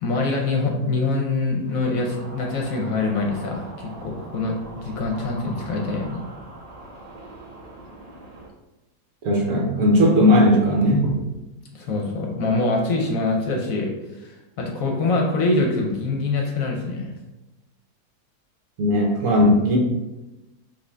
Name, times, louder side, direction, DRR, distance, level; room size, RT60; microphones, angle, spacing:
voice 1, 0.0-6.2 11.7-13.9 14.2-17.1, left 3 dB, 65° left, 1 dB, 1.0 m, -24 dB
sound 1, 1.6-8.5, right 2 dB, 45° right, 0.5 m, -41 dB
voice 2, 9.2-11.1 18.8-19.8, left 1 dB, 60° right, 0 dB, 1.0 m, -17 dB
5.2 x 2.7 x 3.3 m, 1.0 s
omnidirectional pair, 1.7 m